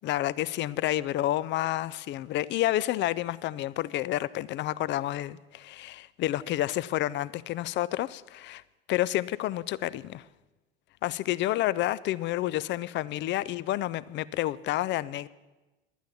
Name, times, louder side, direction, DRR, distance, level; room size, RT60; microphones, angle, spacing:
voice 1, 0.0-8.6 8.9-10.3 11.0-15.3, left 14 dB, 35° left, 19 dB, 0.4 m, -29 dB
11.5 x 9.3 x 7.2 m, 1.1 s
figure-of-eight pair, 65°, 32 cm